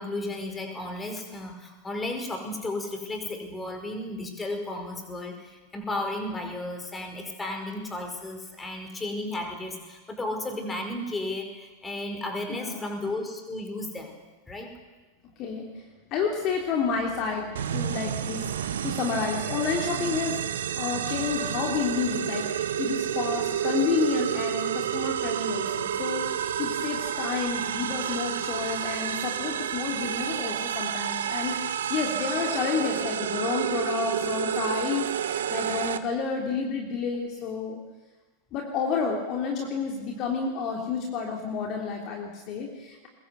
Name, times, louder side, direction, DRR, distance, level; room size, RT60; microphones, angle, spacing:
voice 1, 0.0-14.2 14.4-14.7, left 2 dB, 15° left, 4 dB, 5.1 m, -34 dB
voice 2, 12.5-13.0 15.4-15.8 16.1-37.8 38.5-43.1, left 5 dB, 35° left, 0 dB, 3.2 m, -30 dB
sound 1, 17.5-36.0, right 9 dB, 60° right, 1.1 m, -30 dB
22.5 x 21.5 x 8.1 m, 1.2 s
figure-of-eight pair, 90°, 0 cm